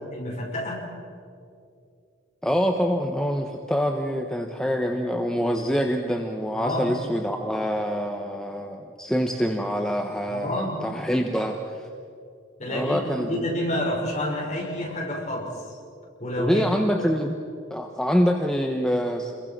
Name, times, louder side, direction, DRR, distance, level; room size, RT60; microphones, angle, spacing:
voice 1, 0.1-0.9 6.5-6.9 10.3-10.8 12.6-15.5 16.2-16.6, left 1 dB, 35° left, -2 dB, 6.1 m, -29 dB
voice 2, 2.4-11.9 12.7-13.5 16.4-17.4 17.7-19.3, equal, 5° left, 2 dB, 1.1 m, -25 dB
28.5 x 22.0 x 6.1 m, 2.4 s
head